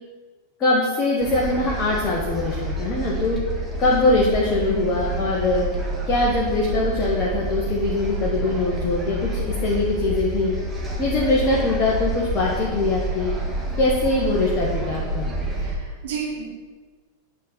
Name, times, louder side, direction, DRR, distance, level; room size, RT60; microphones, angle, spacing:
voice 1, 0.6-3.4 3.8-5.7 6.1-10.5 11.0-13.3 13.8-15.3, left 2 dB, 30° left, -4 dB, 1.6 m, -22 dB
sound 1, 1.2-15.8, right 1 dB, 10° right, 1.7 m, -28 dB
voice 2, 15.6-16.4, right 6 dB, 55° right, -3 dB, 2.3 m, -31 dB
9.2 x 4.4 x 6.8 m, 1.4 s
figure-of-eight pair, 90°, 0 cm